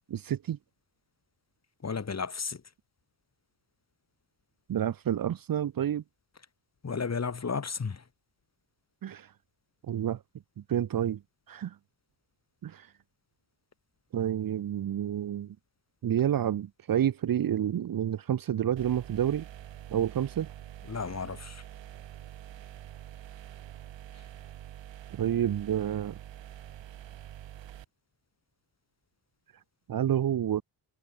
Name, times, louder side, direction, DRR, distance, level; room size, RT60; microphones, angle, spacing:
voice 1, 0.1-0.6 4.7-6.0 9.0-9.3 9.9-10.2 10.7-11.2 11.5-11.7 12.6-12.8 14.1-15.5 16.0-19.5 19.9-20.5 25.1-26.2 29.9-30.6, right 10 dB, 50° right, 0.9 m, -29 dB
voice 2, 1.8-2.6 6.8-8.0 20.9-21.6, left 5 dB, 35° left, 4.0 m, -33 dB
sound 1, 18.8-27.8, right 11 dB, 80° right, 3.1 m, -46 dB
cardioid pair, 95°, 44 cm